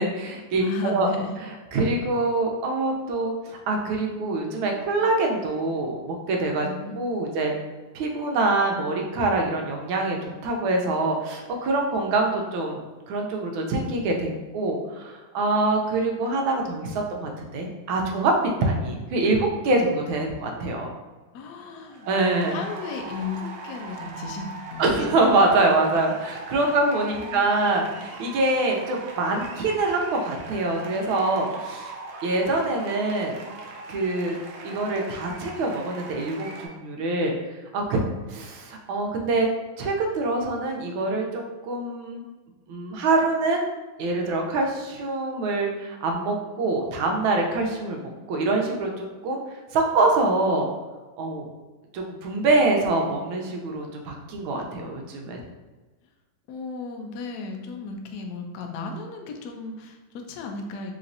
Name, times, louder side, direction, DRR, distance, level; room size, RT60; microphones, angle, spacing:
voice 1, 0.0-1.1 1.7-6.7 6.9-7.5 7.9-18.3 18.6-20.9 22.1-22.6 24.8-31.9 32.2-33.3 33.9-34.4 34.6-37.3 37.7-38.0 38.3-39.5 39.8-42.2 42.7-43.7 44.0-49.4 49.7-50.7 51.2-51.5 51.9-55.4, right 2 dB, 90° right, 1 dB, 1.5 m, -25 dB
voice 2, 0.6-1.3 6.6-7.5 21.3-22.1 22.5-25.1 26.6-26.8 27.1-27.5 56.5-60.9, left 4 dB, 75° left, 3 dB, 0.9 m, -35 dB
sound 1, 21.7-36.7, right 3 dB, 75° right, 1.2 m, -40 dB
4.1 x 3.0 x 2.6 m, 1.3 s
omnidirectional pair, 2.1 m